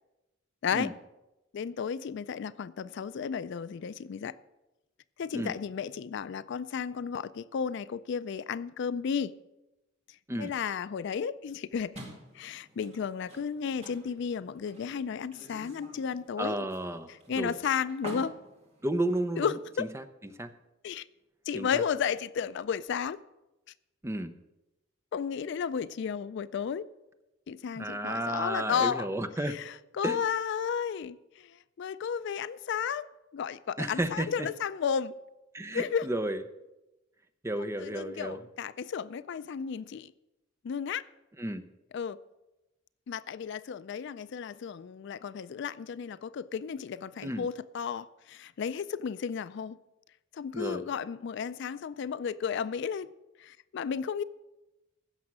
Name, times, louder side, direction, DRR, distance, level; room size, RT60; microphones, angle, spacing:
voice 1, 1.5-4.4 5.2-9.4 10.4-12.0 12.3-16.7 17.1-18.4 19.4-19.9 20.8-21.1 21.5-23.2 25.1-26.9 27.5-29.1 29.4-33.1 33.3-35.2 35.7-36.1 37.8-40.1 40.6-41.0 41.9-42.2 43.1-49.8 50.3-53.1 53.4-54.2, left 7 dB, 60° left, 0.3 m, -33 dB
sound 1, 11.9-19.7, right 1 dB, 30° right, 2.3 m, -49 dB
voice 2, 16.4-17.6 18.8-19.5 19.8-20.0 20.4-20.5 21.5-21.8 24.0-24.3 27.8-29.6 30.0-30.2 33.8-34.5 35.5-36.4 37.4-38.4 41.4-41.6 47.2-47.5 50.5-50.8, right 1 dB, 15° right, 0.6 m, -32 dB
15.5 x 6.3 x 6.1 m
head